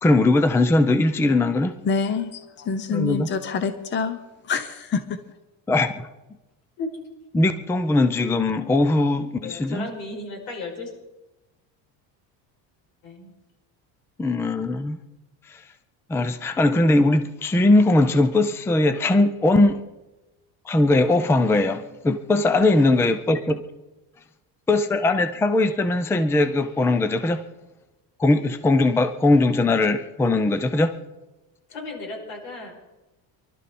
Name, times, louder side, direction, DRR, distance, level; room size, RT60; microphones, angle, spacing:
voice 1, 0.0-1.7 2.9-3.3 5.7-6.1 7.3-9.9 14.2-15.0 15.5-15.6 16.1-19.8 20.7-23.6 24.7-27.4 28.2-30.9, left 2 dB, 5° left, 0.4 m, -20 dB
voice 2, 1.8-5.2, left 5 dB, 25° left, 0.8 m, -27 dB
voice 3, 9.4-10.9 13.0-13.3 31.7-32.7, left 2 dB, 85° left, 6.5 m, -34 dB
24.0 x 12.5 x 4.2 m
cardioid pair, 160°, 43 cm